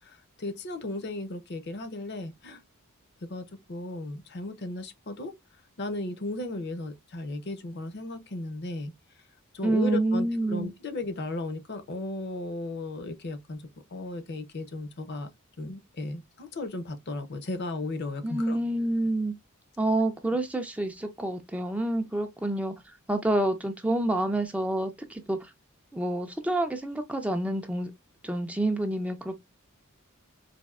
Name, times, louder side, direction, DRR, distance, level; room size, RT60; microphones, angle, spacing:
voice 1, 0.0-2.6 3.3-5.3 5.8-8.9 9.5-15.3 15.6-18.6, left 2 dB, 50° left, 0.6 m, -35 dB
voice 2, 9.6-10.7 18.2-19.3 19.8-22.7 23.1-25.4 25.9-27.9 28.2-29.4, right 1 dB, 5° right, 0.3 m, -28 dB
4.1 x 2.6 x 2.3 m
head